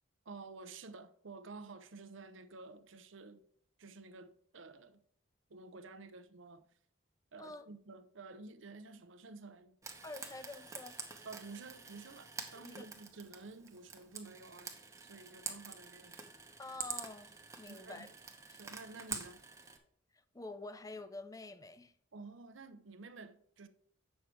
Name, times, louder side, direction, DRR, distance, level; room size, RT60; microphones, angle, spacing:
voice 1, 0.2-3.4 3.8-5.0 5.5-6.6 7.3-9.8 11.2-16.2 17.7-18.1 18.6-19.4 22.1-23.7, right 3 dB, 70° right, 0.7 m, -51 dB
Frying (food), 9.8-19.8, right 5 dB, 15° right, 0.9 m, -47 dB
voice 2, 10.0-11.0 12.5-12.9 16.6-18.1 18.5-18.6 20.1-21.9, left 2 dB, 15° left, 0.5 m, -48 dB
8.4 x 6.4 x 4.5 m
head